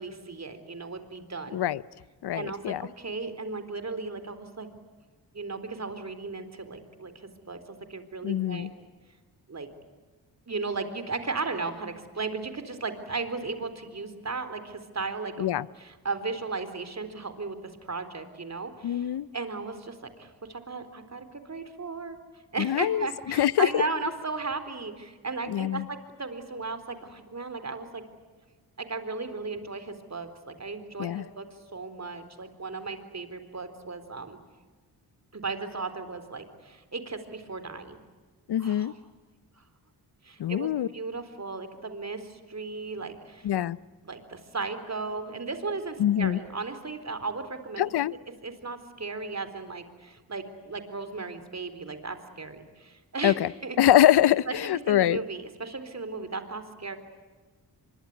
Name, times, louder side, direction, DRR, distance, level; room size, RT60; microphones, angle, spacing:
voice 1, 0.0-1.6 2.3-4.7 5.3-8.7 9.5-9.7 10.5-15.5 15.8-22.2 22.5-28.0 28.8-31.5 31.7-34.4 35.3-38.0 38.6-39.0 39.6-39.7 40.2-43.5 44.0-47.9 48.4-53.8 54.5-57.0, right 4 dB, 40° right, 3.9 m, -36 dB
voice 2, 2.2-2.8 8.2-8.7 15.4-15.6 18.8-19.3 22.6-23.8 25.5-25.8 31.0-31.2 38.5-38.9 40.4-40.9 43.4-43.8 46.0-46.4 47.8-48.1 53.2-53.5 53.8-55.2, left 12 dB, 70° left, 0.8 m, -24 dB
24.5 x 23.0 x 9.5 m
cardioid pair, 55°, 41 cm